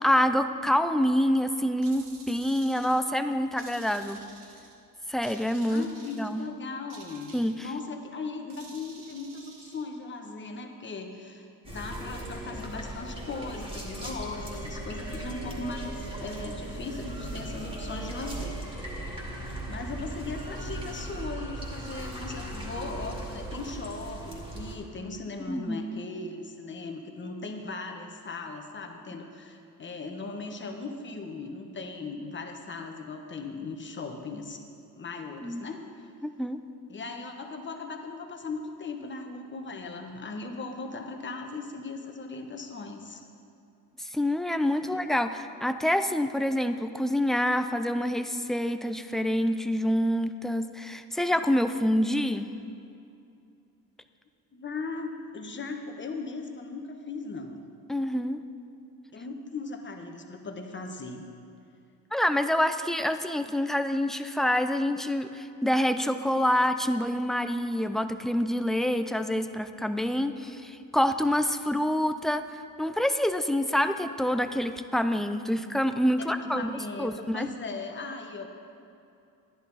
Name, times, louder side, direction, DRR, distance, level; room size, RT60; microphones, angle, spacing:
voice 1, 0.0-4.2 5.1-5.8 6.2-6.4 7.3-7.6 25.5-26.0 35.4-35.7 36.2-36.6 44.0-52.5 57.9-58.4 62.1-72.4 72.8-76.7 77.0-77.5, equal, ahead, 9 dB, 0.4 m, -27 dB
sound 1, 1.8-3.1 3.6-4.8 5.2-6.5 6.9-7.9 8.5-9.8, right 3 dB, 65° right, 1.6 m, -51 dB
voice 2, 5.7-19.0 19.7-34.6 35.0-35.8 36.9-43.2 44.8-45.0 54.5-57.6 59.1-61.2 76.2-78.5, left 3 dB, 35° left, 4 dB, 1.2 m, -38 dB
sound 2, 11.6-24.7, right 1 dB, 15° right, 2.3 m, -38 dB
11.5 x 10.5 x 4.1 m, 2.6 s
cardioid pair, 100°, 34 cm